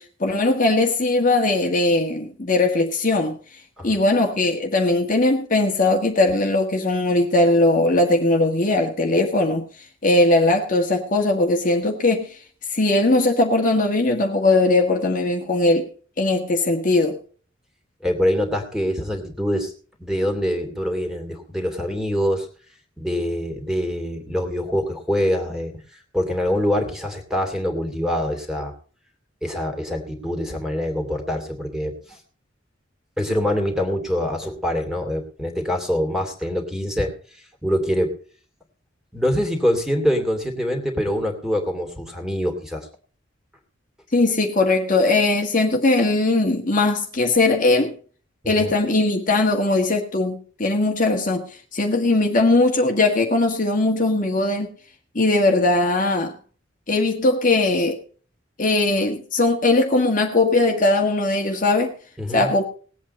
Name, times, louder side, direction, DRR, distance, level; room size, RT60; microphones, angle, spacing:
voice 1, 0.0-3.4 3.8-9.6 10.0-12.4 12.7-15.9 16.2-17.2 44.1-47.9 48.4-54.7 55.1-56.3 56.9-58.0 58.6-61.9 62.3-62.7, left 2 dB, 40° left, 1.6 m, -19 dB
voice 2, 18.0-19.7 20.0-22.5 23.0-25.7 26.1-28.7 29.4-32.2 33.2-37.1 37.6-38.1 39.1-42.9 48.6-48.7 62.2-62.5, equal, 5° right, 2.6 m, -24 dB
19.5 x 8.3 x 4.2 m
head